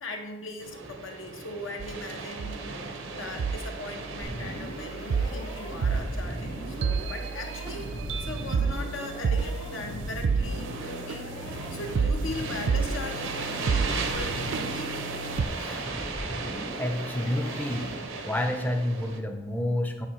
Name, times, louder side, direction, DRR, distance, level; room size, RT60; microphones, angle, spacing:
voice 1, 0.0-7.9 8.2-15.0 15.6-16.5, left 2 dB, 85° left, 4 dB, 0.9 m, -39 dB
sound 1, 0.6-19.2, right 3 dB, 90° right, 0.7 m, -38 dB
sound 2, 1.8-2.1 2.4-2.6 3.4-3.6 4.2-15.4, right 5 dB, 70° right, 0.3 m, -30 dB
sound 3, 4.2-18.3, equal, 60° left, 1.8 m, -39 dB
voice 2, 16.8-18.0 18.2-20.1, left 1 dB, 10° left, 6 dB, 0.4 m, -29 dB
8.6 x 4.5 x 3.0 m, 1.1 s
head